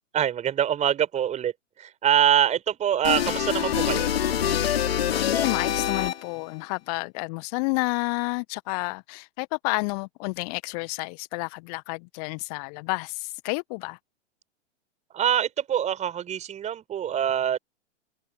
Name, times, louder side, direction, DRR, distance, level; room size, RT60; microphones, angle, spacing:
voice 1, 0.1-4.1 15.1-17.6, right 10 dB, 20° right, 4.9 m, -24 dB
sound 1, 3.0-6.5, left 10 dB, 55° left, 2.7 m, -25 dB
voice 2, 5.1-14.0, left 33 dB, 30° left, 1.3 m, -30 dB
figure-of-eight pair, 105°, 36 cm